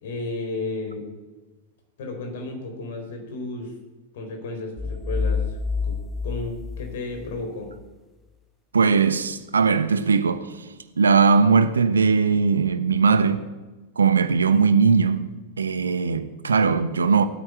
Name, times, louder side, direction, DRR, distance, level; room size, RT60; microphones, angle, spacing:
voice 1, 0.0-1.0 2.0-3.7 4.1-5.6 5.8-6.0 6.2-7.7, left 2 dB, 55° left, 4.0 m, -33 dB
sound 1, 4.8-7.4, left 4 dB, 10° left, 0.5 m, -28 dB
voice 2, 8.7-10.5 11.0-13.4 14.0-15.3 15.6-17.3, right 5 dB, 75° right, 1.0 m, -19 dB
17.0 x 9.2 x 8.8 m
figure-of-eight pair, 90°, 0 cm